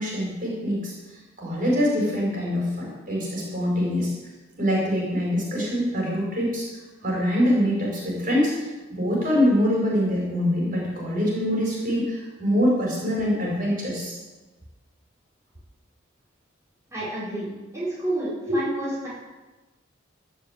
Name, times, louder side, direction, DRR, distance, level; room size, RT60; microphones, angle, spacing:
voice 1, 0.0-4.1 4.6-6.7 7.0-14.1, equal, 40° right, -3 dB, 4.8 m, -24 dB
voice 2, 16.9-19.1, right 1 dB, 15° right, -10 dB, 4.4 m, -30 dB
15.0 x 6.6 x 8.9 m, 1.2 s
head